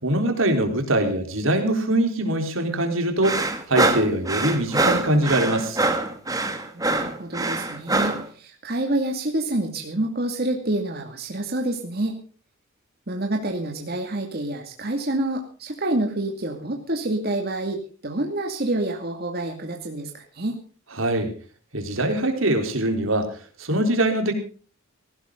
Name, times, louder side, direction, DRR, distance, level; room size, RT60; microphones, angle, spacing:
voice 1, 0.0-5.8 21.0-21.3 21.7-24.3, right 1 dB, 70° right, 5 dB, 4.0 m, -23 dB
sound 1, 3.2-8.3, right 2 dB, 15° right, 2.0 m, -24 dB
voice 2, 6.7-12.2 13.1-20.6, right 1 dB, 50° right, 2 dB, 2.4 m, -27 dB
18.5 x 15.5 x 3.9 m, 0.39 s
head